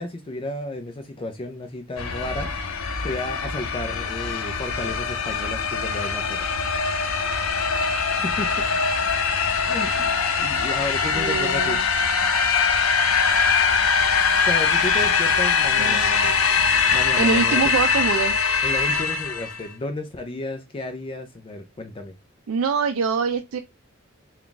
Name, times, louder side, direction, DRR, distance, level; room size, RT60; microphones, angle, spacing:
voice 1, 0.0-2.5 3.0-6.5 8.1-8.7 9.7-10.1 10.4-11.8 14.4-16.4 16.9-17.7 18.6-22.1, left 2 dB, 25° left, 0.4 m, -32 dB
sound 1, 2.0-19.7, left 5 dB, 90° left, 0.6 m, -22 dB
voice 2, 11.1-11.8 15.8-16.3 17.2-18.4 22.5-23.6, right 5 dB, 80° right, 0.4 m, -24 dB
3.5 x 2.3 x 3.8 m
head